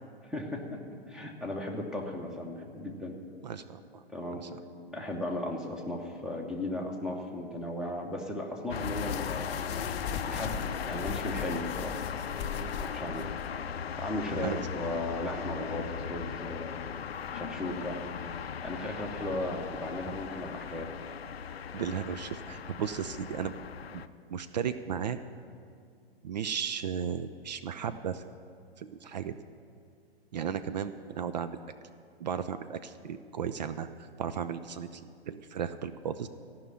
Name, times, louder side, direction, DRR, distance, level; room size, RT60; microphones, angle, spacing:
voice 1, 0.2-0.8 1.1-3.2 4.1-4.5 4.9-10.0 10.2-12.0 12.8-13.3 14.0-17.0 17.3-18.0 18.6-20.9, left 1 dB, ahead, 1 dB, 1.0 m, -36 dB
voice 2, 3.4-4.0 4.3-4.6 12.5-12.7 13.1-13.3 14.4-14.6 21.7-23.5 23.9-24.0 24.3-25.2 26.2-28.2 28.8-29.4 30.3-31.6 32.2-33.9 34.2-36.3, right 8 dB, 45° right, 11 dB, 0.4 m, -35 dB
sound 1, 8.7-24.1, left 7 dB, 75° left, 0.5 m, -37 dB
sound 2, 8.7-13.5, left 6 dB, 20° left, 0.5 m, -40 dB
14.5 x 5.7 x 8.6 m, 2.3 s
figure-of-eight pair, 110°, 31 cm